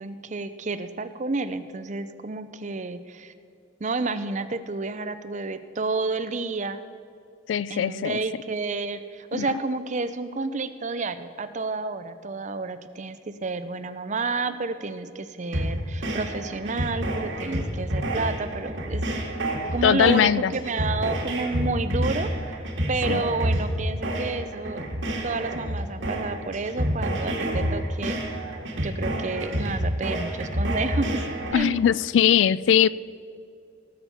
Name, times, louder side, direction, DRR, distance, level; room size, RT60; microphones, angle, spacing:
voice 1, 0.0-3.3 3.8-6.8 7.7-19.1 19.7-22.6 22.9-24.8 25.2-28.2 28.8-31.2 31.5-32.0, right 3 dB, 40° right, 11 dB, 0.6 m, -30 dB
voice 2, 7.5-8.2 9.3-9.5 19.8-20.5 23.1-23.2 31.5-32.9, left 9 dB, 70° left, 19 dB, 0.3 m, -20 dB
sound 1, 15.5-31.5, equal, 80° right, 2.2 m, -28 dB
17.5 x 7.1 x 5.8 m, 2.4 s
head